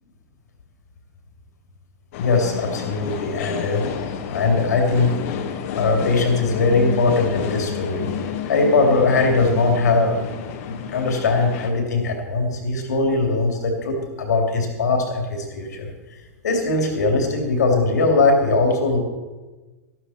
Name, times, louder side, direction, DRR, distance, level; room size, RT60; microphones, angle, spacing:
sound 1, 2.1-11.7, left 8 dB, 55° left, 1.5 m, -30 dB
voice 1, 2.2-3.8 4.3-5.1 5.7-8.1 8.5-10.3 10.7-15.9 16.4-19.0, left 3 dB, 80° left, 2 dB, 3.0 m, -20 dB
13.0 x 12.5 x 4.4 m, 1.2 s
hypercardioid pair, 110°, 9 cm